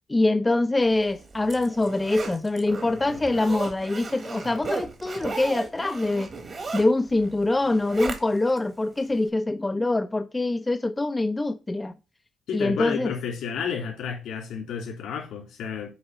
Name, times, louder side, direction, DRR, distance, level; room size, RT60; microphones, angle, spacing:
voice 1, 0.1-6.3 6.7-11.9 12.5-13.1, left 2 dB, 15° left, 0.5 m, -24 dB
Zipper (clothing), 1.0-8.6 9.0-9.1, right 4 dB, 40° right, 1.5 m, -36 dB
voice 2, 12.5-15.9, left 7 dB, 85° left, 3.1 m, -31 dB
8.0 x 2.9 x 5.4 m
cardioid pair, 90°, 0 cm